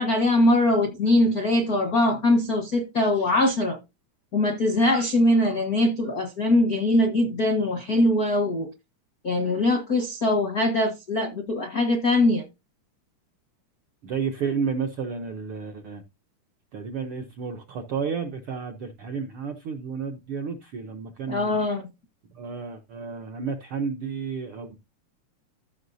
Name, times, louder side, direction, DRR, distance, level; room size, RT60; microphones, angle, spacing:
voice 1, 0.0-3.8 4.3-8.7 9.2-12.4 21.3-21.8, left 1 dB, 60° left, 0.9 m, -22 dB
voice 2, 14.0-16.0 16.7-21.6 22.3-24.8, right 5 dB, 75° right, 1.2 m, -31 dB
14.5 x 6.1 x 2.6 m
omnidirectional pair, 3.6 m